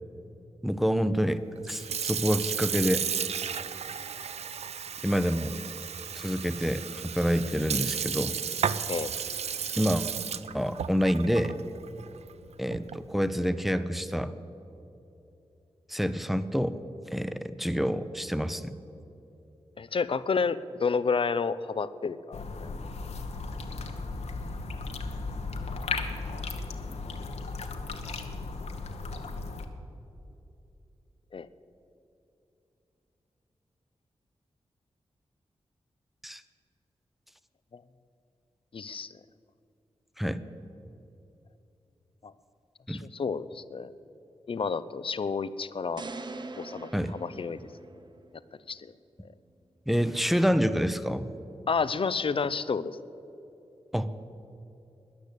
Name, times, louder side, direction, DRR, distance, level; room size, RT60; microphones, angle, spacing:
voice 1, 0.6-1.4 1.7-3.0 5.0-5.5 6.1-8.3 9.8-10.0 10.5-11.5 12.6-14.3 15.9-16.7 17.1-18.7 36.2-36.4 40.2-40.4 42.9-43.0 46.9-47.2 49.9-51.3 53.9-54.1, equal, ahead, 12 dB, 0.8 m, -27 dB
Sink (filling or washing) / Fill (with liquid), 1.6-13.1, right 7 dB, 75° right, 0.5 m, -34 dB
voice 2, 19.8-22.7 31.3-31.5 37.7-37.8 38.7-39.1 42.2-42.3 42.9-43.9 44.5-46.0 46.6-46.9 47.2-47.6 48.7-48.9 51.7-53.0, left 5 dB, 55° left, 16 dB, 0.6 m, -30 dB
sound 1, 22.3-29.7, left 3 dB, 80° left, 1.1 m, -36 dB
sound 2, 46.0-48.3, right 3 dB, 45° right, 0.9 m, -42 dB
13.5 x 10.0 x 8.3 m, 2.9 s
cardioid pair, 55°, 11 cm